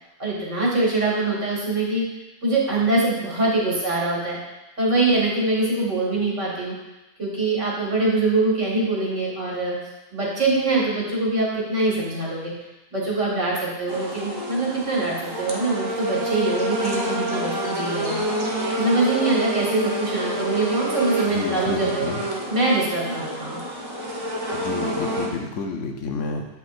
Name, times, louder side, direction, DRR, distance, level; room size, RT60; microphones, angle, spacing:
voice 1, 0.2-2.0 2.4-4.4 4.8-6.7 7.2-9.8 10.1-12.5 12.9-18.2 18.8-22.0 22.5-23.6, right 2 dB, 80° right, -5 dB, 2.2 m, -23 dB
sound 1, 13.9-25.3, right 1 dB, 20° right, 0.8 m, -28 dB
voice 2, 21.3-22.2 24.5-26.5, left 4 dB, 80° left, 3 dB, 1.1 m, -30 dB
8.2 x 5.4 x 2.5 m, 1.0 s
omnidirectional pair, 1.2 m